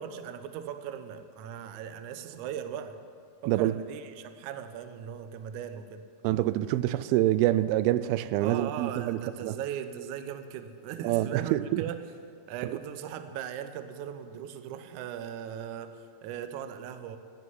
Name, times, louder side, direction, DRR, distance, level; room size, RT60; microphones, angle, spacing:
voice 1, 0.0-3.0 3.4-6.1 8.4-12.1 12.5-17.2, right 9 dB, 70° right, 2.0 m, -38 dB
voice 2, 6.2-9.6 11.0-11.8 12.6-12.8, right 14 dB, 90° right, 2.5 m, -26 dB
15.5 x 9.8 x 9.4 m
omnidirectional pair, 4.3 m